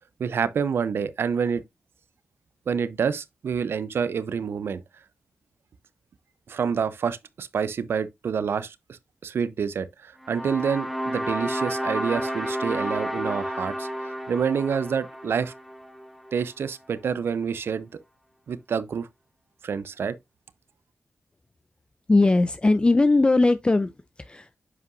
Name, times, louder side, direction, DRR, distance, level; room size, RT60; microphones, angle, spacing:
voice 1, 0.2-1.6 2.7-4.8 6.5-15.5 16.3-17.9 18.5-19.1 19.6-20.2, right 6 dB, 75° right, 0.6 m, -28 dB
sound 1, 10.2-16.5, equal, ahead, 1.5 m, -31 dB
voice 2, 22.1-23.9 24.2-24.5, left 2 dB, 25° left, 0.4 m, -19 dB
9.4 x 5.6 x 2.5 m
cardioid pair, 55°, 4 cm